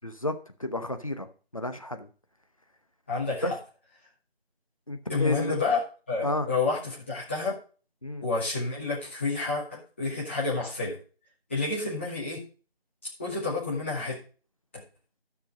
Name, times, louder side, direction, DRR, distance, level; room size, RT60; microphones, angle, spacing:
voice 1, 0.0-1.3 1.5-2.1 3.4-3.5 4.9-5.5 6.2-6.5 8.0-8.2, left 1 dB, 35° left, 7 dB, 0.9 m, -31 dB
voice 2, 3.1-3.6 5.1-7.6 8.2-11.0 11.5-12.4 13.0-14.2 14.7-14.8, left 3 dB, 10° left, -8 dB, 2.2 m, -29 dB
12.5 x 6.1 x 5.2 m, 0.38 s
figure-of-eight pair, 170°, 32 cm